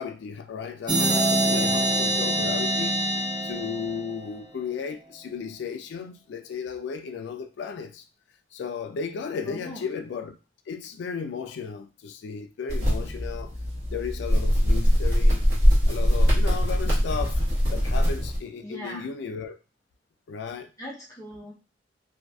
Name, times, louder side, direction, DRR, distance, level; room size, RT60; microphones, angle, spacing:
voice 1, 0.0-3.0 3.4-8.0 8.5-10.4 10.7-13.5 13.9-15.5 15.9-17.4 17.7-19.6 20.3-20.7, left 6 dB, 70° left, 0.3 m, -34 dB
sound 1, 0.9-4.4, right 1 dB, 25° right, 0.5 m, -25 dB
voice 2, 9.5-9.9 14.9-15.0 18.6-19.1 20.8-21.5, equal, 15° left, 0.7 m, -40 dB
sound 2, 12.7-18.4, equal, 60° right, 1.0 m, -22 dB
2.5 x 2.3 x 2.2 m
head